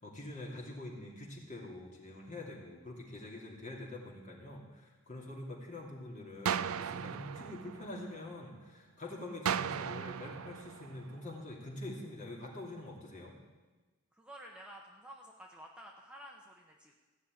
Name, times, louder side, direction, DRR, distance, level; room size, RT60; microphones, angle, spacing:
voice 1, 0.0-13.4, left 1 dB, 35° left, -1 dB, 2.8 m, -45 dB
sound 1, 6.5-8.5 9.5-11.5, right 8 dB, 85° right, 0.4 m, -37 dB
voice 2, 14.2-16.9, right 1 dB, 5° right, 0 dB, 1.1 m, -51 dB
15.5 x 6.6 x 9.6 m, 1.3 s
head